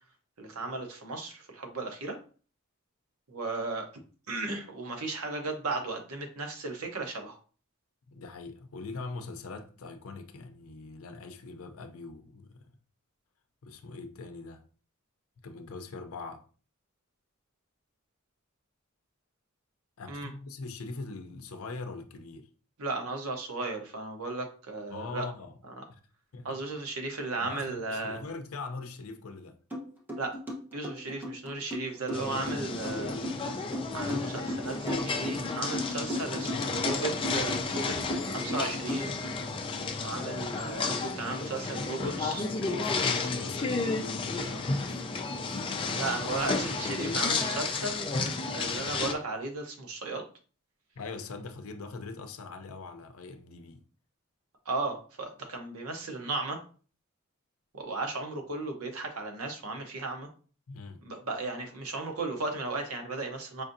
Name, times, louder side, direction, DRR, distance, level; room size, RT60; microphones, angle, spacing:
voice 1, 0.4-2.2 3.3-3.9 4.3-7.4 20.1-20.3 22.8-25.3 25.7-25.8 26.4-28.2 30.2-30.4 30.7-33.2 33.9-36.5 36.8-38.0 38.3-39.2 40.0-42.4 46.0-48.1 48.5-50.2 54.7-56.6 57.7-60.3 61.0-63.6, right 3 dB, 85° right, 0.8 m, -35 dB
voice 2, 8.1-12.6 13.6-14.6 15.4-16.4 20.0-22.5 24.9-25.6 25.9-26.0 26.3-26.6 27.4-29.6 36.5-37.1 38.1-38.4 42.6-46.1 48.2-48.5 51.0-53.8 60.7-61.0, left 3 dB, 75° left, 0.5 m, -42 dB
sound 1, 29.7-29.8 30.1-39.3, equal, 10° right, 0.8 m, -35 dB
sound 2, 32.1-49.1, left 3 dB, 25° left, 0.4 m, -32 dB
4.9 x 2.6 x 2.6 m
head